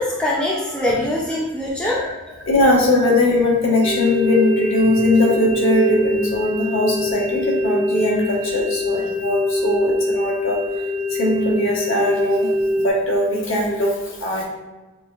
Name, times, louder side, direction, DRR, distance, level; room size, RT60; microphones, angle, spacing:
voice 1, 0.0-2.0 2.4-2.5, left 1 dB, 5° left, -4 dB, 0.5 m, -23 dB
voice 2, 1.8-2.1 2.5-12.5 12.8-14.4, left 1 dB, 60° left, -3 dB, 1.2 m, -20 dB
sound 1, 3.8-12.9, left 2 dB, 80° right, 1.0 m, -24 dB
6.7 x 3.2 x 2.4 m, 1.2 s
head